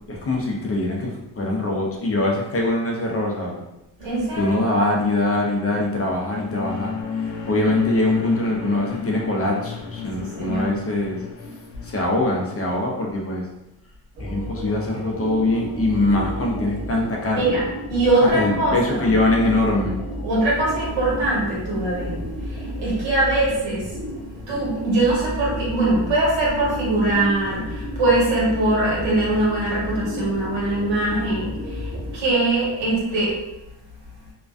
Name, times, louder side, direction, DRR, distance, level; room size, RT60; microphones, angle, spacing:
voice 1, 0.1-3.6 4.4-6.9 7.5-11.2 11.8-13.4 14.2-17.7 18.2-20.0, left 2 dB, 35° left, -1 dB, 0.4 m, -23 dB
voice 2, 4.0-4.5 10.2-10.6 17.3-17.6 17.9-19.1 20.2-22.2 22.5-23.9 24.5-33.3, right 2 dB, 85° right, -6 dB, 1.3 m, -22 dB
sound 1, 6.1-12.7, left 6 dB, 90° left, 0.6 m, -32 dB
sound 2, 14.1-32.1, equal, 35° right, 0.9 m, -32 dB
2.5 x 2.1 x 2.4 m, 0.92 s
cardioid pair, 115°, 44 cm